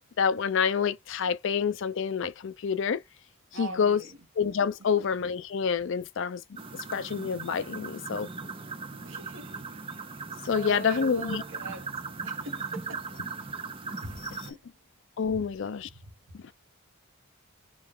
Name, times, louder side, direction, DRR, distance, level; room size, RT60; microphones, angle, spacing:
voice 1, 0.0-3.0 3.6-4.0 4.4-6.4 6.9-8.3 10.4-11.4 15.2-15.9, left 6 dB, 55° left, 0.4 m, -27 dB
voice 2, 3.5-4.2 4.9-5.1 9.0-9.6 10.5-13.1 14.0-14.2 14.5-14.6 15.3-15.5 15.9-16.3, right 3 dB, 60° right, 1.1 m, -42 dB
sound 1, 6.6-14.5, right 4 dB, 25° right, 0.6 m, -38 dB
2.9 x 2.3 x 3.5 m
head